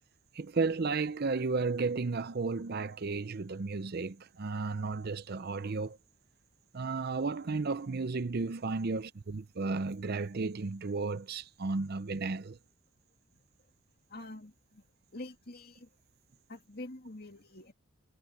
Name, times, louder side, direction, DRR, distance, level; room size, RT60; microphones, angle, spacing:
voice 1, 0.3-6.0 6.7-12.6, right 4 dB, 45° right, 0.5 m, -33 dB
voice 2, 14.1-14.8 15.1-15.9 16.5-17.7, left 2 dB, 45° left, 2.3 m, -46 dB
head